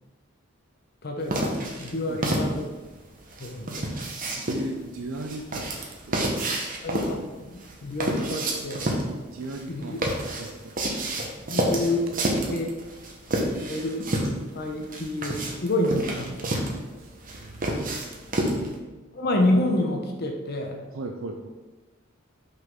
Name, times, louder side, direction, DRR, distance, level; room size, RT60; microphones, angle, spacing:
voice 1, 1.0-2.7 3.4-4.0 6.8-8.8 9.7-10.0 11.5-12.1 12.5-12.7 13.7-14.1 14.5-16.6 19.1-20.8, left 1 dB, 50° left, 2 dB, 0.8 m, -28 dB
sound 1, 1.3-18.8, right 1 dB, 40° right, 1.1 m, -29 dB
voice 2, 4.4-5.7 6.1-6.6 9.3-10.0 10.4-10.8 17.0-18.0 18.4-19.1 20.9-21.5, right 1 dB, 75° right, 3 dB, 0.5 m, -38 dB
5.8 x 5.6 x 3.7 m, 1.3 s
head